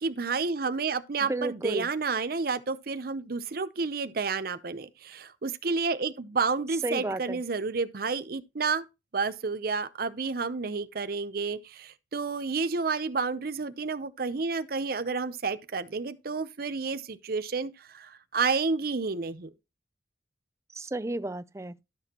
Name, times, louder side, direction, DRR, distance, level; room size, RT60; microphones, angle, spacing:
voice 1, 0.0-8.8 9.1-19.5, right 4 dB, 55° right, 0.7 m, -30 dB
voice 2, 1.3-1.9 6.8-7.4 20.7-21.8, right 2 dB, 15° right, 0.4 m, -32 dB
12.5 x 6.4 x 2.9 m
head